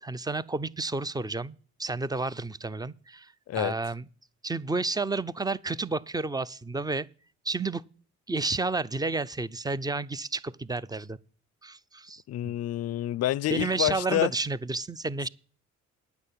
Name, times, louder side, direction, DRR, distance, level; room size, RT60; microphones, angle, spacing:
voice 1, 0.0-4.1 4.4-7.1 7.4-7.8 8.3-11.2 11.6-12.5 13.5-15.3, right 3 dB, 15° right, 0.5 m, -31 dB
voice 2, 12.3-14.3, left 13 dB, 55° left, 0.5 m, -28 dB
9.7 x 7.1 x 8.4 m
cardioid pair, 90°, 30 cm